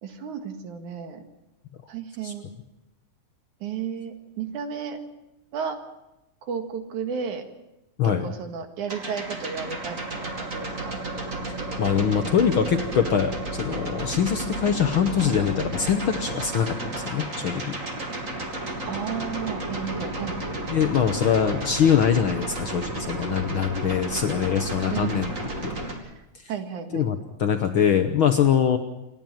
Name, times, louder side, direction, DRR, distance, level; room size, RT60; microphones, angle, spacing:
voice 1, 0.0-1.2 1.9-2.5 3.6-5.0 5.5-5.8 6.4-7.5 8.0-11.0 18.8-20.4 24.9-25.3 26.0-26.2 26.5-27.1, right 7 dB, 80° right, 6 dB, 3.2 m, -33 dB
sound 1, 8.9-25.9, right 2 dB, 25° right, 2.8 m, -32 dB
voice 2, 11.8-17.8 20.7-25.3 25.6-25.7 26.9-28.8, left 8 dB, 65° left, 7 dB, 1.4 m, -23 dB
27.5 x 11.0 x 8.9 m, 0.95 s
omnidirectional pair, 3.4 m